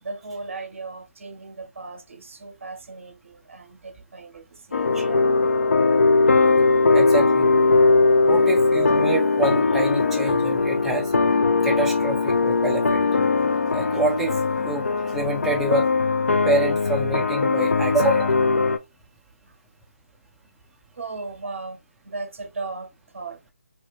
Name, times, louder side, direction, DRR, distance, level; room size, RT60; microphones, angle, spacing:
voice 1, 0.0-5.4 6.5-6.7 20.9-23.4, right 3 dB, 65° right, 0.6 m, -37 dB
sound 1, 4.7-18.8, left 3 dB, 75° left, 0.4 m, -20 dB
voice 2, 6.9-7.5 8.2-11.1 11.6-13.0 13.7-14.4 14.6-14.9 15.1-15.9 16.5-18.3, right 2 dB, 5° right, 0.3 m, -26 dB
2.2 x 2.2 x 2.9 m
figure-of-eight pair, 150°, 7 cm